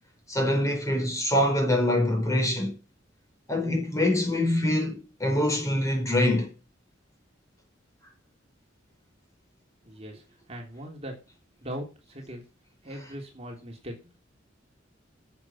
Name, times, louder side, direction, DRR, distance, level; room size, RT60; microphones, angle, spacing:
voice 1, 0.3-2.8 3.5-6.5 12.9-13.1, left 1 dB, 20° left, 5.2 m, -25 dB
voice 2, 9.8-10.2 10.5-11.1 11.6-12.4 12.8-14.2, equal, 35° right, 3.3 m, -39 dB
11.0 x 7.5 x 7.4 m
head